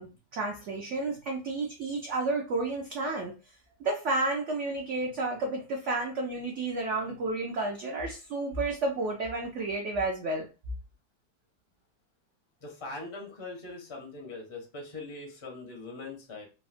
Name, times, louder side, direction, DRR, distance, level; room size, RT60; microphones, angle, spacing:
voice 1, 0.0-3.3 3.8-10.5, right 2 dB, 75° right, 0 dB, 0.6 m, -31 dB
voice 2, 12.6-16.4, left 3 dB, 40° left, 0 dB, 0.4 m, -41 dB
3.6 x 2.0 x 2.5 m, 0.32 s
omnidirectional pair, 1.9 m